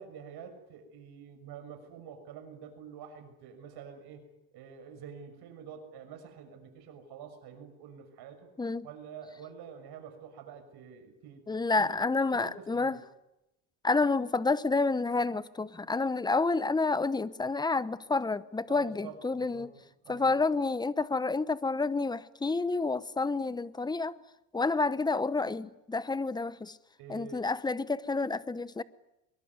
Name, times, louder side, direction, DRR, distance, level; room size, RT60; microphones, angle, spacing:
voice 1, 0.0-4.2 4.5-8.5 8.8-11.9 12.3-13.0 18.7-19.7 20.0-20.4 27.0-27.4, right 7 dB, 65° right, 6.4 m, -47 dB
voice 2, 11.5-13.0 13.8-19.7 20.1-24.2 24.5-26.8 27.1-28.8, left 3 dB, 10° left, 1.0 m, -29 dB
24.5 x 22.5 x 9.6 m
cardioid pair, 115°, 42 cm